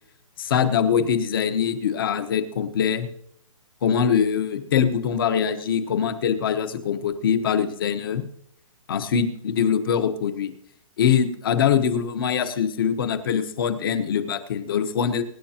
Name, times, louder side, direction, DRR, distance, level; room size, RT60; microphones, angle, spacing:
voice 1, 0.4-3.1 3.8-8.2 8.9-10.5 11.0-15.2, left 7 dB, 40° left, 9 dB, 1.2 m, -23 dB
24.0 x 10.0 x 2.9 m, 0.71 s
hypercardioid pair, 170°, 18 cm